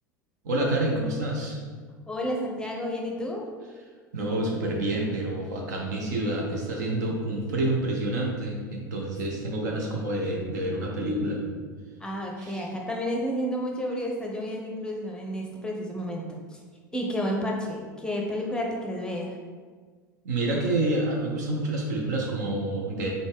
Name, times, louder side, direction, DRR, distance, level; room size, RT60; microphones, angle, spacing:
voice 1, 0.4-1.6 4.1-11.4 12.4-12.6 20.2-23.1, right 1 dB, 65° right, 0 dB, 0.9 m, -28 dB
voice 2, 2.1-3.5 12.0-16.4 16.9-19.3, equal, 10° left, -1 dB, 0.7 m, -31 dB
4.1 x 3.5 x 3.5 m, 1.6 s
figure-of-eight pair, 75°, 10 cm